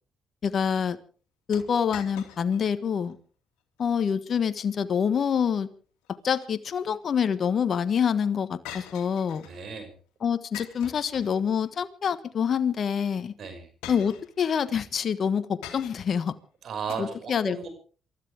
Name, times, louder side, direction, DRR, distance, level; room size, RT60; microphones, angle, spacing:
voice 1, 0.4-1.0 1.5-3.2 3.8-5.7 6.2-9.5 10.2-13.3 13.9-16.3 17.0-17.7, left 7 dB, 55° left, 12 dB, 1.4 m, -26 dB
sound 1, 1.5-2.7 3.1-3.2 3.8-4.1 6.0-6.9 8.6-9.6 10.5-11.7 12.8-13.0 13.8-14.7 15.6-16.2 16.9-17.0, left 10 dB, 90° left, 2.5 m, -44 dB
voice 2, 9.4-9.9 13.4-13.7 16.6-17.7, right 6 dB, 60° right, 7 dB, 5.9 m, -35 dB
27.5 x 13.5 x 3.6 m, 0.39 s
supercardioid pair, 65°, 0 cm